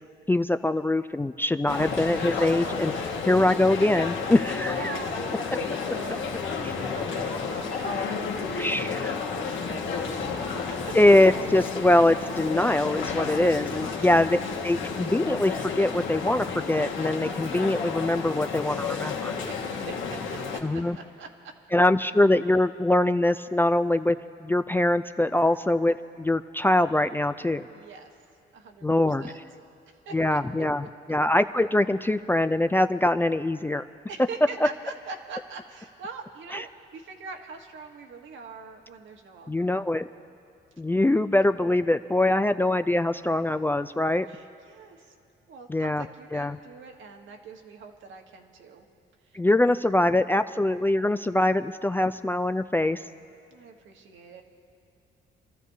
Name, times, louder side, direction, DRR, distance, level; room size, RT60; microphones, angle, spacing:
voice 1, 0.3-2.9 3.2-5.0 8.6-9.1 10.9-19.4 20.6-21.0 21.7-27.7 28.8-29.3 30.1-33.9 36.5-36.6 39.5-40.1 40.8-44.3 45.7-46.1 46.3-46.6 49.3-53.0, left 1 dB, 10° left, 10 dB, 0.3 m, -23 dB
sound 1, 1.7-20.6, left 5 dB, 80° left, 1.5 m, -31 dB
voice 2, 4.7-10.9 13.2-13.9 19.4-20.6 20.9-21.5 27.6-28.2 28.5-29.4 30.0-30.4 34.1-39.8 41.1-41.3 44.3-45.2 45.5-48.8 49.2-49.4 53.5-54.4, right 5 dB, 75° right, 3 dB, 1.3 m, -44 dB
28.0 x 13.5 x 2.8 m, 2.5 s
cardioid pair, 90°, 20 cm